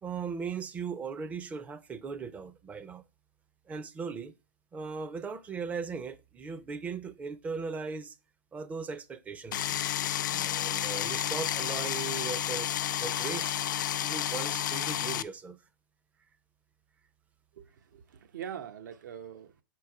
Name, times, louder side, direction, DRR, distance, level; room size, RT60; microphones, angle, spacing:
voice 1, 0.0-3.0 3.7-4.3 4.7-8.1 8.5-9.8 10.3-12.7 13.0-13.6 14.0-15.6, right 5 dB, 15° right, 0.5 m, -38 dB
sound 1, 9.5-15.2, left 11 dB, 75° left, 0.4 m, -31 dB
voice 2, 17.5-19.6, right 9 dB, 70° right, 0.9 m, -43 dB
6.4 x 4.5 x 4.7 m
hypercardioid pair, 140°, 10 cm